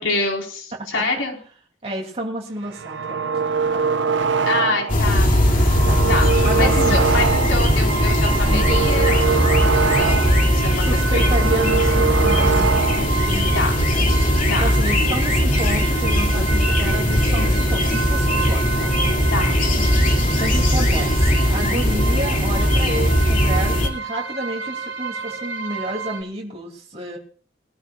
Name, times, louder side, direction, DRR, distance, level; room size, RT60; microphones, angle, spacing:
voice 1, 0.0-1.4 4.4-5.5 6.1-6.3 6.6-11.3 13.5-13.7 14.5-14.6 15.1-15.2 19.3-20.0, left 3 dB, 85° left, 0 dB, 4.5 m, -26 dB
voice 2, 1.8-3.2 3.7-3.9 5.9-6.0 6.4-7.1 8.5-9.4 10.8-13.9 14.6-19.0 20.4-27.2, right 1 dB, 30° right, -1 dB, 2.7 m, -30 dB
sound 1, 2.6-5.0 5.4-7.7 8.1-10.5 10.8-13.2, right 5 dB, 65° right, 0.7 m, -23 dB
sound 2, 4.9-23.9, equal, 40° left, 2.5 m, -19 dB
sound 3, 6.7-26.2, right 5 dB, 85° right, 2.3 m, -31 dB
23.0 x 14.0 x 2.4 m, 0.43 s
head